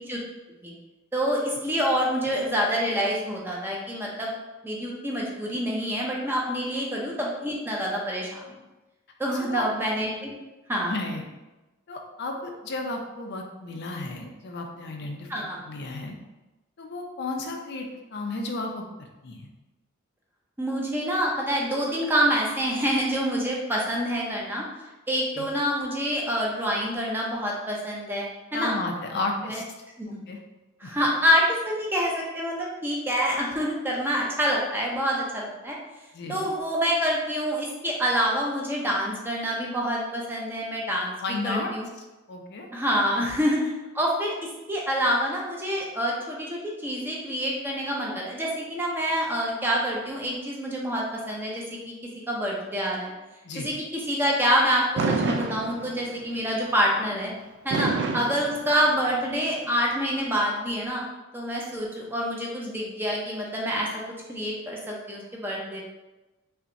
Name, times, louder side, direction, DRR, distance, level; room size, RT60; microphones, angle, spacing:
voice 1, 1.1-4.3 4.6-8.6 9.2-10.3 10.7-10.9 15.3-15.6 20.6-28.8 29.5-29.6 30.0-30.2 30.8-35.8 36.3-41.1 41.4-41.9 42.7-43.7 43.9-44.3 44.7-51.9 52.3-53.1 53.5-57.3 57.6-61.0 61.3-64.0 64.3-65.8, equal, 10° right, -3 dB, 0.5 m, -27 dB
voice 2, 10.9-11.3 11.9-16.1 16.8-18.9 19.2-19.5 25.3-25.5 28.5-29.6 30.3-30.4 30.8-30.9 36.1-36.4 41.2-41.7 42.3-42.7 53.4-53.7 57.7-57.9, left 2 dB, 55° left, 3 dB, 0.5 m, -33 dB
Fireworks, 55.0-56.3 57.7-59.3, right 3 dB, 55° right, 0.3 m, -28 dB
5.6 x 2.2 x 2.6 m, 1.1 s
head